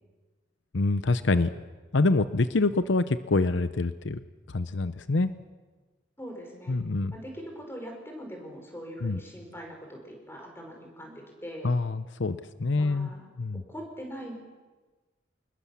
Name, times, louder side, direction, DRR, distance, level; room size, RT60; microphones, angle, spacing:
voice 1, 0.7-1.5 1.9-4.2 4.5-5.3 6.7-7.1 9.0-9.2 11.6-13.1 13.4-13.6, left 3 dB, 70° left, 12 dB, 0.8 m, -26 dB
voice 2, 6.2-6.8 7.1-11.7 12.7-13.3 13.7-14.3, equal, 10° left, 2 dB, 5.5 m, -42 dB
26.5 x 21.0 x 7.3 m, 1.3 s
head